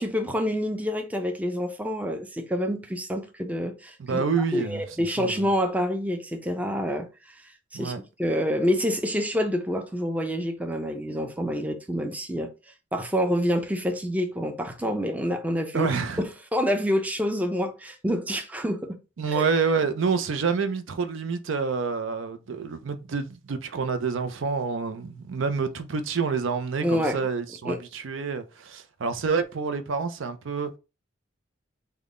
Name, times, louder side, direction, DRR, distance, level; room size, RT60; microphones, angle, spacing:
voice 1, 0.0-4.2 4.5-7.1 7.7-7.9 8.2-12.5 12.9-15.9 16.2-19.0 19.3-19.4 26.8-27.2 27.7-27.8, equal, 10° right, 0.5 m, -27 dB
voice 2, 4.0-5.5 7.7-8.0 15.7-16.2 19.2-30.7, right 5 dB, 85° right, 0.5 m, -28 dB
3.6 x 2.2 x 3.6 m
head